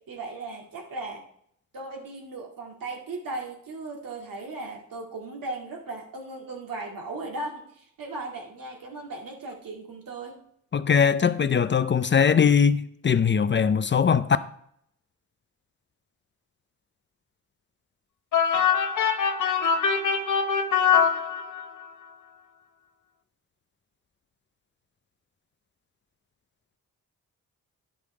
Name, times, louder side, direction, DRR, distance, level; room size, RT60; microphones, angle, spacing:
voice 1, 0.1-1.3 1.7-10.4, right 2 dB, 85° right, 2.1 m, -37 dB
voice 2, 10.7-14.3, left 7 dB, 35° left, 0.4 m, -21 dB
sound 1, 18.3-21.8, left 6 dB, 65° left, 0.9 m, -23 dB
10.5 x 5.3 x 4.8 m
cardioid pair, 95°, 33 cm